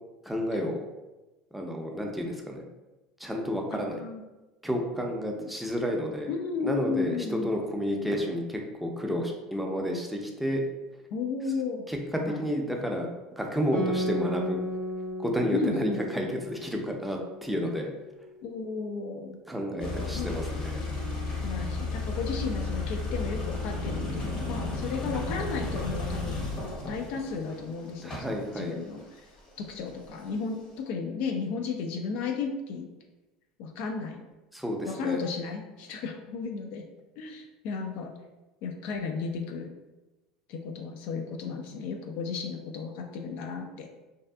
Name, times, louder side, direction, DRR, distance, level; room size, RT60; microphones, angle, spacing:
voice 1, 0.2-0.8 1.5-2.6 3.2-4.0 4.6-6.3 6.6-10.6 11.9-14.6 15.2-17.9 19.5-20.8 28.0-28.8 34.5-35.2, equal, ahead, 0 dB, 0.5 m, -31 dB
voice 2, 3.7-4.2 5.3-5.6 6.3-7.5 11.1-11.8 12.3-12.4 15.5-16.2 18.4-19.4 20.1-20.3 21.3-26.5 26.9-29.0 29.6-32.9 33.6-34.2 34.8-36.8 37.2-38.1 38.6-39.7 40.5-44.0, left 5 dB, 65° left, 3 dB, 0.3 m, -34 dB
Guitar, 13.7-18.7, equal, 90° left, 1.3 m, -35 dB
sound 1, 19.5-26.3, right 6 dB, 55° right, 0.4 m, -48 dB
sound 2, 19.8-30.3, left 3 dB, 45° left, 0.8 m, -33 dB
2.6 x 2.3 x 2.3 m, 1.1 s
hypercardioid pair, 85°, 3 cm